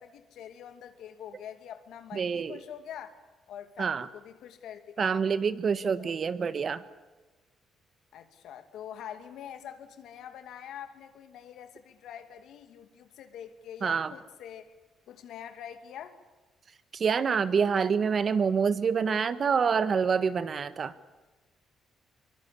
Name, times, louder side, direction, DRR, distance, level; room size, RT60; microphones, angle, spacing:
voice 1, 0.0-3.2 3.5-5.2 6.0-6.1 8.1-14.7 15.1-16.2, left 9 dB, 80° left, 8 dB, 2.5 m, -45 dB
voice 2, 2.1-2.6 3.8-4.1 5.0-6.8 13.8-14.1 16.9-20.9, right 6 dB, 45° right, 13 dB, 1.4 m, -26 dB
23.5 x 23.5 x 8.5 m, 1.2 s
cardioid pair, 90°, 0 cm